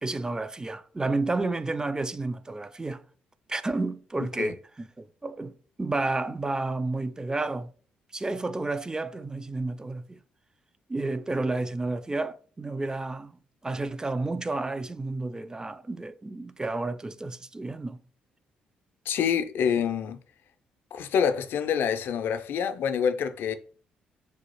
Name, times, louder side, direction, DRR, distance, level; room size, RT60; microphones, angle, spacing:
voice 1, 0.0-3.0 3.5-5.5 5.8-7.7 8.1-10.2 10.9-13.4 13.6-18.0, right 2 dB, 15° right, 0.3 m, -31 dB
voice 2, 19.1-20.2 20.9-23.5, left 7 dB, 60° left, 0.4 m, -26 dB
4.6 x 2.4 x 3.0 m
figure-of-eight pair, 45°, 4 cm